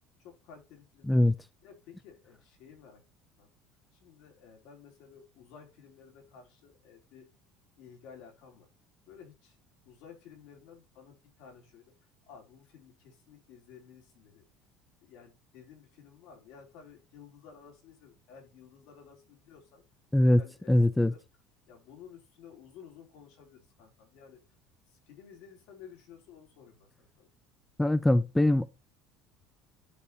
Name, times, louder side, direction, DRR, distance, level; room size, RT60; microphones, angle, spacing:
voice 1, 0.2-1.3 1.6-3.0 3.4-3.5 3.9-7.4 7.8-8.7 9.1-9.6 9.9-14.4 15.0-19.8 20.1-21.2 21.7-24.4 24.9-27.3, left 7 dB, 65° left, 3.5 m, -54 dB
voice 2, 20.7-21.1 27.8-28.7, left 1 dB, 5° left, 0.3 m, -22 dB
11.5 x 5.0 x 4.3 m
cardioid pair, 165°, 0 cm